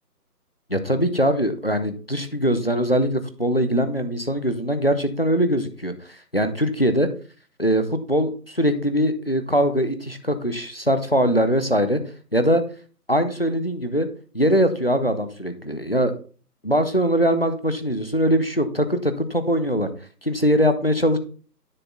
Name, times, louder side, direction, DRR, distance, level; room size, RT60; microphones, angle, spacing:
voice 1, 0.7-5.9 6.3-7.1 7.6-12.0 12.3-12.6 13.1-14.1 14.3-16.1 16.6-19.9 20.2-21.2, equal, 40° left, 9 dB, 0.6 m, -21 dB
9.9 x 4.3 x 3.8 m, 0.40 s
figure-of-eight pair, 175°, 48 cm